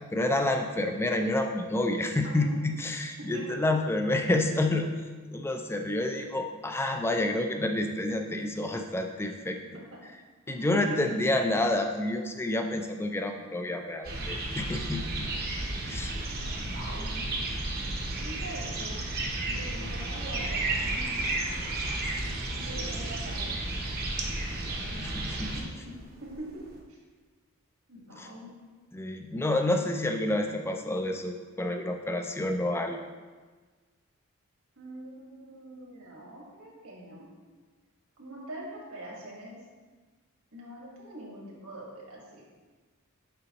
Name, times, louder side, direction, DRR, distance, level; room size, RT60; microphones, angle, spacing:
voice 1, 0.0-4.9 5.3-9.6 10.5-15.3 15.9-16.1 25.0-25.6 28.2-28.3 28.9-33.0, left 1 dB, 10° left, 4 dB, 0.4 m, -29 dB
voice 2, 2.2-2.5 3.2-3.6 9.9-10.0 10.5-11.0 16.3-17.3 18.2-19.0 19.4-21.2 22.5-23.6 24.7-25.0 25.5-26.6 26.9-27.0 27.9-28.5 34.8-37.3 38.2-39.6 40.5-42.4, right 1 dB, 75° right, -2 dB, 1.5 m, -43 dB
sound 1, 14.0-26.8, right 2 dB, 45° right, 0.8 m, -33 dB
6.8 x 5.0 x 2.9 m, 1.4 s
head